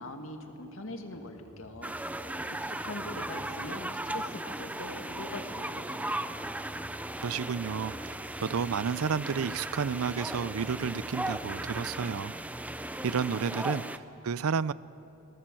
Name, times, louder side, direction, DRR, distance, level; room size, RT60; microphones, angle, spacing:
voice 1, 0.0-1.9 2.5-6.3, left 2 dB, 70° left, 2.2 m, -43 dB
sound 1, 1.1-12.6, equal, 40° right, 3.8 m, -51 dB
sound 2, 1.8-14.0, right 1 dB, 5° right, 0.5 m, -37 dB
voice 2, 7.2-8.2 8.4-12.3 13.0-14.7, right 6 dB, 90° right, 0.5 m, -31 dB
26.0 x 19.0 x 7.7 m
head